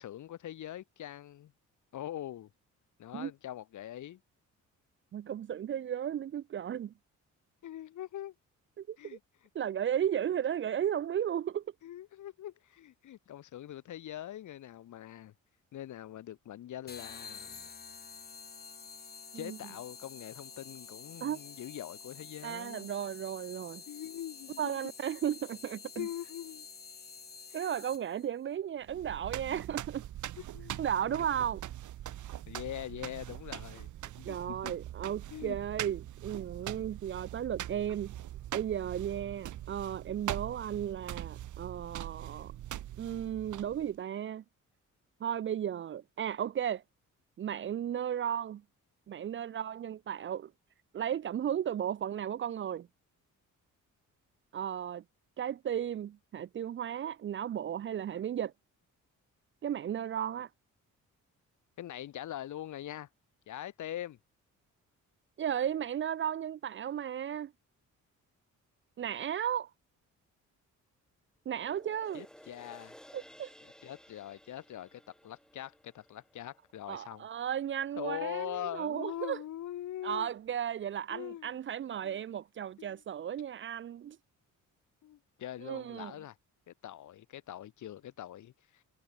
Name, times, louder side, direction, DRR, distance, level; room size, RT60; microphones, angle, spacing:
voice 1, 0.0-1.5 1.9-2.5 3.0-4.2 7.6-8.3 9.0-9.2 11.8-15.3 15.7-17.7 19.3-22.9 23.9-24.8 26.0-26.7 27.5-27.6 30.4-31.3 32.5-33.9 34.2-34.7 35.3-35.6 35.8-35.9 61.8-63.1 63.5-64.2 72.1-72.9 73.8-77.3 78.0-80.3 81.1-81.6 82.0-82.2 82.8-83.0 85.0-86.4 86.7-88.8, left 12 dB, 70° left, 1.9 m, -43 dB
voice 2, 5.1-6.9 8.8-9.2 9.5-11.6 19.3-19.6 21.2-21.4 22.4-23.8 24.6-26.1 27.5-30.0 30.8-31.6 34.2-38.2 38.5-42.5 43.0-44.4 45.2-46.8 47.4-48.6 49.1-50.5 50.9-52.9 54.5-55.0 55.4-58.5 59.6-60.5 65.4-67.5 69.0-69.7 71.5-72.3 73.1-73.5 76.9-79.4 80.0-84.2 85.6-86.1, right 9 dB, 40° right, 0.4 m, -35 dB
sound 1, 16.9-28.3, left 5 dB, 30° left, 3.2 m, -49 dB
sound 2, 28.8-44.0, right 12 dB, 70° right, 1.4 m, -42 dB
sound 3, 71.5-78.1 78.5-78.6, equal, ahead, 5.9 m, -57 dB
cardioid pair, 140°, 31 cm